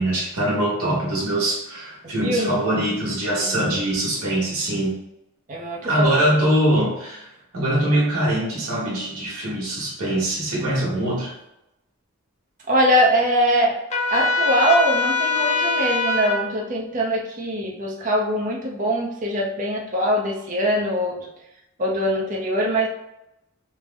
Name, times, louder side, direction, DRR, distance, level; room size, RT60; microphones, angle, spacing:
voice 1, 0.0-4.9 5.8-7.3 7.5-11.3, right 1 dB, 90° right, -5 dB, 1.3 m, -23 dB
voice 2, 2.2-2.6 3.3-3.4 5.5-6.2 12.7-13.8 14.1-21.2 21.8-22.9, equal, 35° right, -1 dB, 0.6 m, -22 dB
Trumpet, 13.9-16.4, left 3 dB, 30° left, 0.6 m, -22 dB
3.3 x 2.1 x 3.4 m, 0.87 s
head